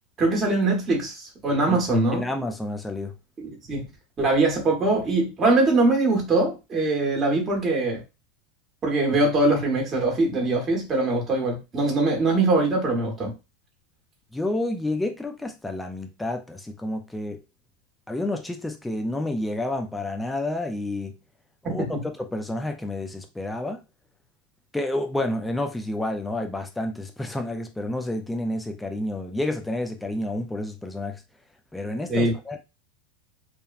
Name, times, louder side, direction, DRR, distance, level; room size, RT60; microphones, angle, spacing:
voice 1, 0.2-2.2 3.4-3.8 4.2-8.0 8.8-13.3 21.6-22.0 32.1-32.3, right 2 dB, 20° right, 0.9 m, -22 dB
voice 2, 2.1-3.1 14.3-17.4 18.1-21.1 21.7-23.8 24.7-31.2 31.7-32.6, left 1 dB, 5° left, 0.3 m, -29 dB
2.8 x 2.1 x 2.4 m
supercardioid pair, 145°, 0 cm